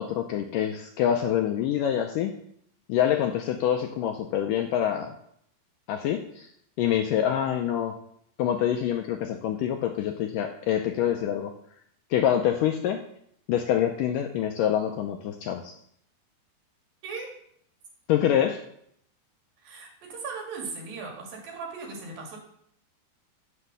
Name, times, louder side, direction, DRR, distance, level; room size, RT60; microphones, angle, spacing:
voice 1, 0.0-2.3 2.9-5.1 5.9-6.5 6.8-8.0 8.4-11.5 12.1-13.0 13.5-15.7 18.1-18.6, left 10 dB, 80° left, 4 dB, 2.0 m, -26 dB
voice 2, 17.0-17.3 19.6-22.4, right 4 dB, 65° right, 0 dB, 4.0 m, -38 dB
8.5 x 8.0 x 6.8 m, 0.68 s
omnidirectional pair, 4.5 m